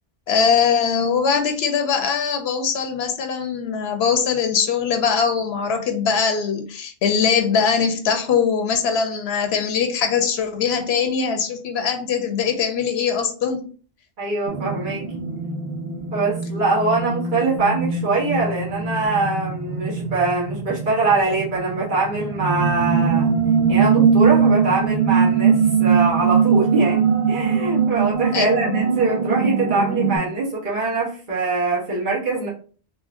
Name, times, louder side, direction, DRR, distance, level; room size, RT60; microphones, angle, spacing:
voice 1, 0.3-13.7 28.3-28.8, left 6 dB, 85° left, 7 dB, 0.8 m, -21 dB
voice 2, 14.2-15.0 16.1-23.3 23.7-32.5, right 3 dB, 55° right, -5 dB, 1.3 m, -23 dB
sound 1, 14.5-30.2, right 6 dB, 90° right, 1.0 m, -21 dB
3.7 x 2.6 x 2.5 m, 0.40 s
omnidirectional pair, 1.0 m